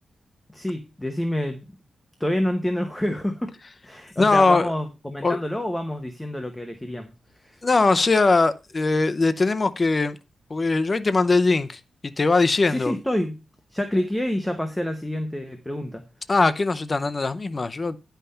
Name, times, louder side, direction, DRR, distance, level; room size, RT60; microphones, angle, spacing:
voice 1, 0.5-1.6 2.2-3.5 3.8-7.1 7.4-7.6 12.7-13.4 13.7-16.0, left 1 dB, 5° left, 1.0 m, -28 dB
voice 2, 4.2-4.7 5.2-5.4 7.6-10.2 10.5-11.8 12.2-12.9 16.3-18.0, left 3 dB, 30° left, 0.6 m, -20 dB
9.9 x 5.7 x 5.5 m
wide cardioid pair, 145°, 0 cm